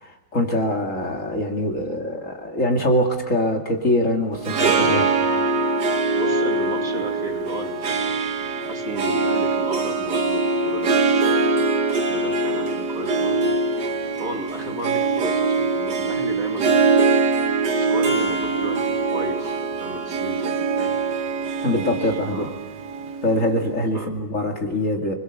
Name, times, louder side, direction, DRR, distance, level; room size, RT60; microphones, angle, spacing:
voice 1, 0.0-5.1 21.6-22.5 23.2-25.2, left 1 dB, 45° left, 2 dB, 2.8 m, -23 dB
Harp, 4.3-23.7, right 4 dB, 75° right, 2.1 m, -23 dB
voice 2, 4.6-5.0 6.1-8.1 8.7-11.6 12.1-13.5 14.2-17.0 17.7-20.9 22.0-22.5 23.9-24.1, right 1 dB, 50° right, 2 dB, 3.3 m, -34 dB
29.5 x 21.5 x 6.9 m, 1.1 s
omnidirectional pair, 1.9 m